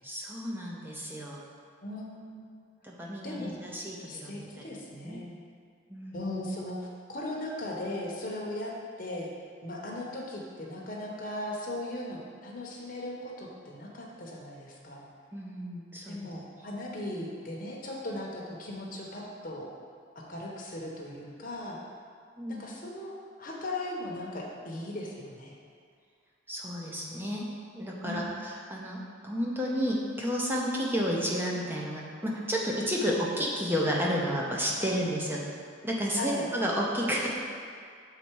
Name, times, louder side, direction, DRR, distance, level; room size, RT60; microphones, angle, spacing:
voice 1, 0.0-1.4 2.8-4.7 5.0-5.2 5.9-6.3 15.3-16.2 22.4-22.6 26.5-27.5 27.8-29.0 29.2-35.4 35.8-37.3, equal, 10° right, -3 dB, 0.7 m, -31 dB
voice 2, 1.8-2.5 3.2-3.6 4.1-5.4 6.1-6.8 7.1-8.7 9.0-9.3 9.6-15.1 16.1-19.6 20.1-21.8 22.5-25.6 28.0-28.3 34.8-34.9 36.1-36.5, left 1 dB, 45° left, -2 dB, 1.0 m, -38 dB
6.7 x 4.1 x 4.6 m, 2.2 s
head